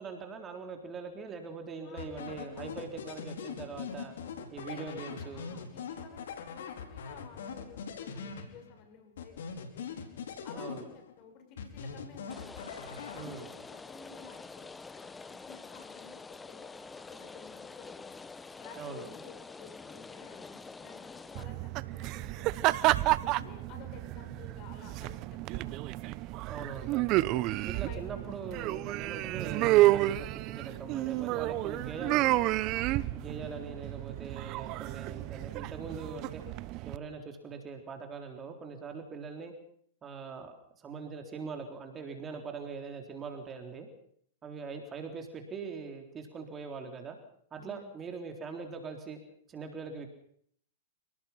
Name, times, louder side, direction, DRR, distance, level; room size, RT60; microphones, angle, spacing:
voice 1, 0.0-4.1 4.5-5.5 10.5-10.8 13.1-13.5 18.8-19.1 26.5-27.2 27.7-32.4 33.1-36.4 36.8-39.5 40.0-43.9 44.4-47.2 47.5-49.2 49.5-50.1, right 5 dB, 20° right, 4 dB, 3.7 m, -42 dB
voice 2, 1.8-2.6 4.7-9.9 10.4-12.6 13.1-18.2 18.6-22.7 23.3-25.2 25.5-26.2 27.6-28.0 32.7-33.2 47.6-47.9, left 6 dB, 40° left, 5 dB, 7.7 m, -53 dB
sound 1, 2.0-8.8 9.2-11.2 11.6-13.6, left 6 dB, 75° left, 4.7 m, -42 dB
Rain, 12.3-21.4, left 4 dB, 10° left, 1.0 m, -47 dB
sound 2, 21.3-37.0, right 17 dB, 40° right, 1.0 m, -30 dB
29.5 x 18.5 x 5.9 m, 0.65 s
hypercardioid pair, 125°, 0 cm